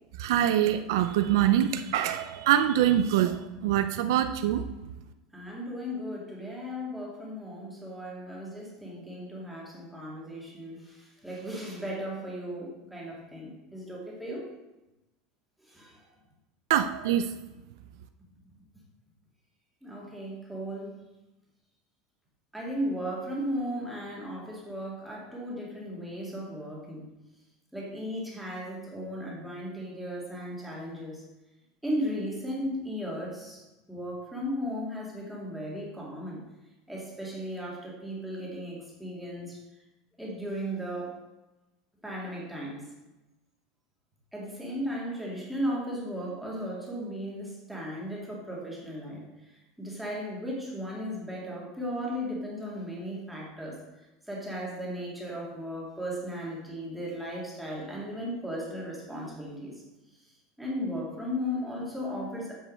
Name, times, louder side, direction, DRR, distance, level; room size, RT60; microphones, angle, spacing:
voice 1, 0.2-4.6 16.7-17.3, right 11 dB, 75° right, 9 dB, 0.5 m, -24 dB
voice 2, 5.3-14.5 15.6-16.0 19.8-20.9 22.5-27.1 27.7-31.2 31.8-33.6 33.9-36.4 36.9-39.6 40.2-41.2 42.0-42.8 44.3-53.8 54.3-59.7 60.6-62.5, equal, ahead, -4 dB, 2.3 m, -36 dB
8.5 x 5.4 x 6.4 m, 1.0 s
supercardioid pair, 165°, 2 cm